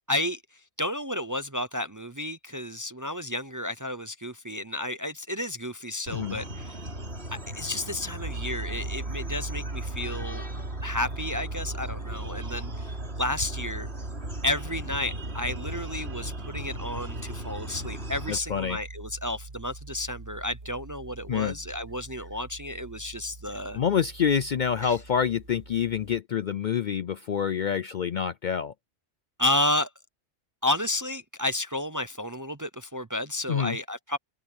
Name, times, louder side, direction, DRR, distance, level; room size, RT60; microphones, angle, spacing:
voice 1, 0.1-6.8 7.3-10.4 10.8-13.9 14.4-23.8 24.8-25.0 29.4-29.9 30.6-34.2, left 1 dB, 20° right, 0.6 m, -32 dB
sound 1, 6.1-18.4, right 1 dB, 60° right, 5.1 m, -39 dB
sound 2, 8.2-26.2, right 3 dB, 45° right, 1.5 m, -39 dB
voice 2, 18.3-18.8 21.3-21.5 23.7-28.7 33.5-33.8, left 8 dB, 55° left, 0.6 m, -27 dB
omnidirectional pair, 1.2 m